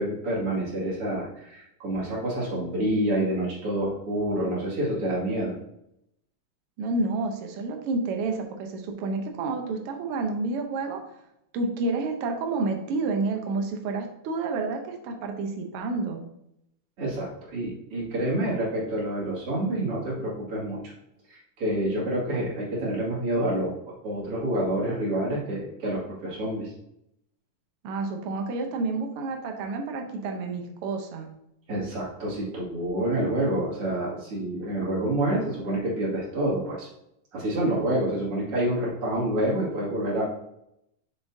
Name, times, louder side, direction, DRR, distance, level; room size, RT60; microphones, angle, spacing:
voice 1, 0.0-5.5 17.0-20.8 21.3-23.7 24.0-26.7 31.7-36.9 37.3-40.2, right 1 dB, 45° right, -5 dB, 3.0 m, -28 dB
voice 2, 6.8-11.0 11.5-16.2 27.8-31.3, right 3 dB, 90° right, 3 dB, 1.2 m, -29 dB
6.9 x 6.7 x 2.7 m, 0.79 s
omnidirectional pair, 3.7 m